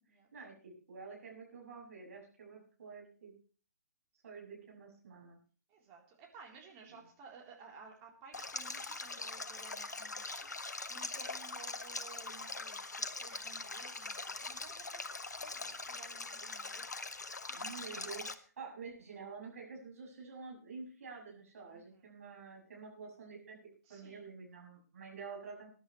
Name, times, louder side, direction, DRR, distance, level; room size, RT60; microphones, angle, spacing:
voice 1, 0.3-3.3 4.2-5.4 17.5-23.6 23.9-25.7, right 5 dB, 55° right, -1 dB, 6.7 m, -49 dB
voice 2, 5.7-16.9 18.0-18.3 21.7-22.1 23.8-24.3, right 5 dB, 25° right, -1 dB, 3.7 m, -56 dB
Stream, 8.3-18.3, left 3 dB, 70° left, 1.2 m, -42 dB
21.0 x 11.0 x 3.2 m, 0.40 s
figure-of-eight pair, 130°, 10 cm